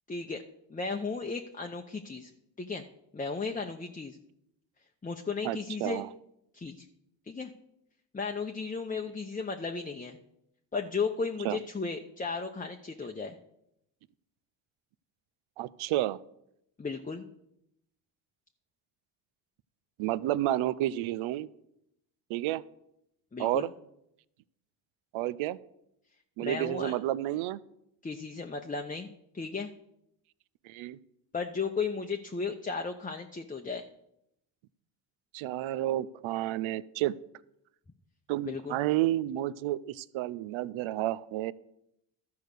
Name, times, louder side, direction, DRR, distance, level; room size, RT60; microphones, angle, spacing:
voice 1, 0.1-0.4 0.7-2.3 2.6-2.8 3.1-4.2 5.0-6.0 6.5-6.9 7.3-7.5 8.1-10.2 10.7-13.4 16.8-17.3 23.3-23.7 26.4-26.9 28.0-29.7 31.3-33.8 38.5-38.8, left 4 dB, 15° left, 4 dB, 0.7 m, -35 dB
voice 2, 5.4-6.1 11.4-11.6 15.6-16.2 20.0-21.5 22.3-22.6 23.4-23.7 25.1-25.6 26.4-27.6 30.6-31.0 35.3-37.1 38.3-41.5, right 14 dB, 80° right, 19 dB, 0.6 m, -30 dB
12.5 x 4.7 x 6.6 m, 0.81 s
supercardioid pair, 65°, 47 cm